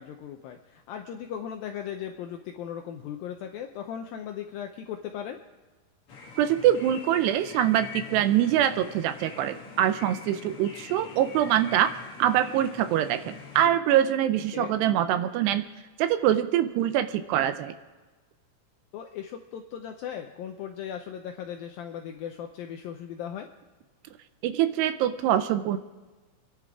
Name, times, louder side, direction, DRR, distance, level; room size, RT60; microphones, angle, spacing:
voice 1, 0.0-5.4 14.5-14.8 18.9-23.5, left 9 dB, 85° left, 4 dB, 2.1 m, -37 dB
sound 1, 6.1-13.7, left 5 dB, 45° left, 2.0 m, -44 dB
voice 2, 6.4-11.9 12.2-15.6 16.0-17.7 24.4-25.8, right 11 dB, 80° right, 11 dB, 2.6 m, -24 dB
28.5 x 11.0 x 3.6 m, 1.3 s
omnidirectional pair, 5.1 m